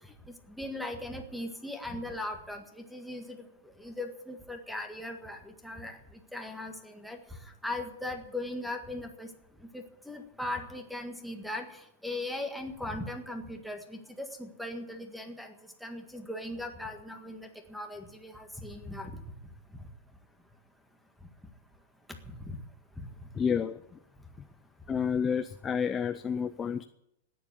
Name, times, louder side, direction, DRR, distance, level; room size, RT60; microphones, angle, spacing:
voice 1, 0.3-3.4 3.8-6.0 6.3-7.2 7.6-9.3 9.7-15.5 15.8-19.2 22.3-22.6 23.0-23.1, left 1 dB, ahead, 5 dB, 1.7 m, -39 dB
voice 2, 23.3-23.8 24.9-26.8, left 7 dB, 15° left, 10 dB, 0.5 m, -29 dB
14.0 x 10.0 x 8.4 m, 0.80 s
supercardioid pair, 155°, 0 cm